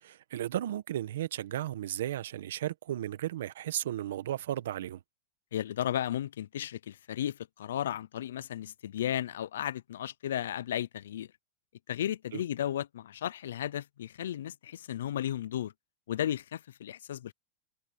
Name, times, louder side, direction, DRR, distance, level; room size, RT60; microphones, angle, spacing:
voice 1, 0.0-5.0 12.3-12.4, right 12 dB, 80° right, 1.0 m, -34 dB
voice 2, 5.5-11.3 11.9-15.7 16.1-17.3, left 11 dB, 85° left, 0.4 m, -34 dB
supercardioid pair, 135°, 0 cm